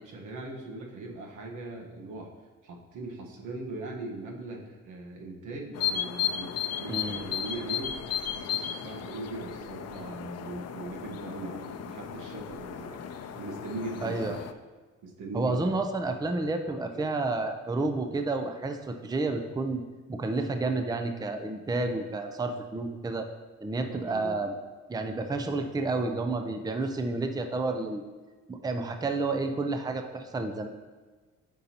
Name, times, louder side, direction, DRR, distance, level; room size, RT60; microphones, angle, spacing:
voice 1, 0.0-2.3 2.6-8.0 8.3-13.0 13.3-14.4 15.0-15.6 16.9-17.1 23.9-24.4, right 2 dB, 80° right, 0 dB, 1.3 m, -40 dB
sound 1, 5.7-14.5, left 9 dB, 55° left, 0.5 m, -35 dB
voice 2, 6.9-7.2 14.0-14.4 15.3-19.8 20.1-23.3 23.6-24.5 24.9-28.0 28.5-30.7, right 3 dB, 15° right, 6 dB, 0.5 m, -30 dB
9.0 x 5.4 x 2.9 m, 1.3 s
cardioid pair, 90°, 30 cm